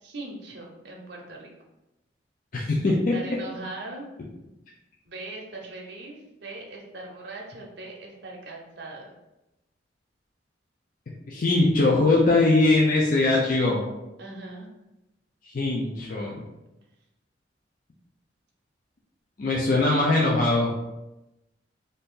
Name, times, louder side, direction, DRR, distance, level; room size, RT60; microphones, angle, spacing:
voice 1, 0.0-1.5 2.8-4.0 5.0-9.1 14.2-14.7, right 2 dB, 65° right, -1 dB, 0.7 m, -40 dB
voice 2, 2.5-3.2 11.3-13.8 15.4-16.4 19.4-20.7, left 2 dB, 45° left, -3 dB, 0.4 m, -21 dB
2.7 x 2.6 x 3.6 m, 0.95 s
head